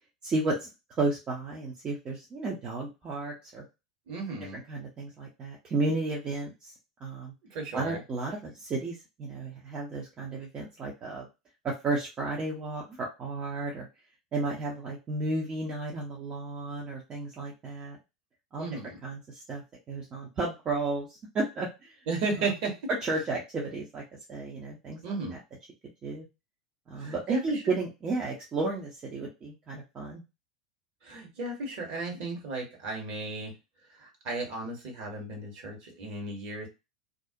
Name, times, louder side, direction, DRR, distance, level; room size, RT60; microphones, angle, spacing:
voice 1, 0.2-0.7 1.0-3.6 4.5-6.7 7.0-7.3 7.7-11.3 11.6-13.9 14.3-18.0 18.5-18.7 19.0-19.6 19.9-21.9 23.0-24.0 24.3-25.4 26.0-26.3 26.9-30.2, right 3 dB, 25° right, -2 dB, 0.6 m, -33 dB
voice 2, 4.1-4.6 7.5-8.0 18.6-19.0 22.1-22.8 25.0-25.3 27.0-27.7 31.0-33.5 34.0-36.7, right 3 dB, 50° right, 1 dB, 1.2 m, -34 dB
2.5 x 2.0 x 2.6 m, 0.26 s
figure-of-eight pair, 85°, 4 cm